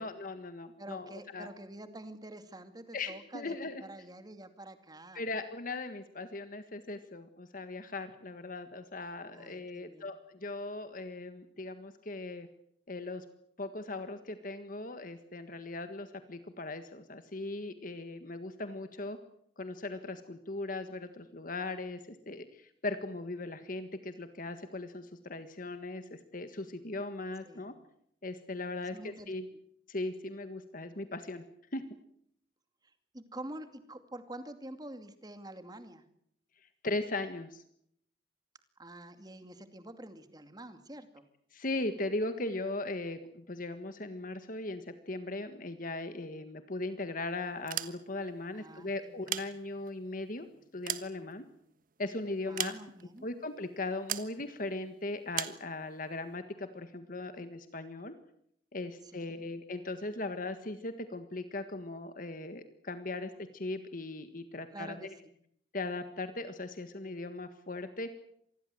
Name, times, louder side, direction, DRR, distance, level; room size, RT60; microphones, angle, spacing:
voice 1, 0.0-1.5 2.9-3.8 5.1-12.5 12.9-13.2 13.6-19.2 19.6-27.7 28.2-29.5 29.9-31.4 31.7-31.8 36.6-37.6 41.5-50.5 50.7-51.5 52.0-52.8 53.2-58.1 58.7-65.1 65.7-68.1, left 2 dB, 45° left, 9 dB, 1.6 m, -38 dB
voice 2, 0.8-5.2 9.3-10.1 27.4-27.7 28.8-29.6 33.1-36.0 38.8-41.2 48.5-49.3 52.5-53.3 59.1-59.4 64.7-65.1, right 1 dB, 20° right, 9 dB, 2.4 m, -47 dB
sound 1, 47.6-48.4 49.1-50.1 50.5-51.8 52.6-53.2 54.1-54.4 55.3-55.7, right 11 dB, 50° right, 1.4 m, -37 dB
26.5 x 20.5 x 7.8 m, 0.71 s
head